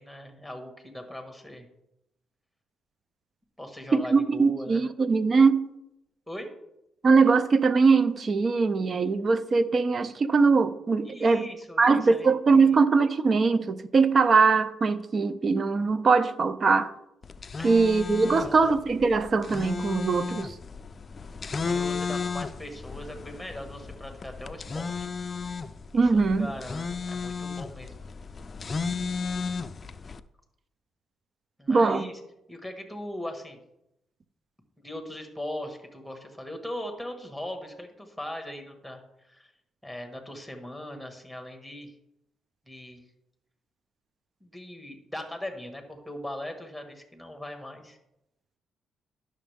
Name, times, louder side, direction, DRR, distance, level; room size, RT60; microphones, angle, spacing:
voice 1, 0.0-1.7 3.6-4.8 6.3-6.5 11.0-12.8 17.6-18.7 21.6-25.1 25.9-28.0 31.6-32.2 32.5-33.6 34.8-39.5 39.8-41.9 42.7-43.0 44.4-48.0, left 1 dB, 5° right, 1.7 m, -40 dB
voice 2, 3.9-5.6 7.0-11.5 11.8-16.9 17.6-20.5 25.9-26.5 31.7-32.1, right 4 dB, 40° right, 0.6 m, -22 dB
sound 1, 17.2-30.2, left 5 dB, 35° left, 0.4 m, -34 dB
11.0 x 6.4 x 3.5 m
cardioid pair, 90°, 0 cm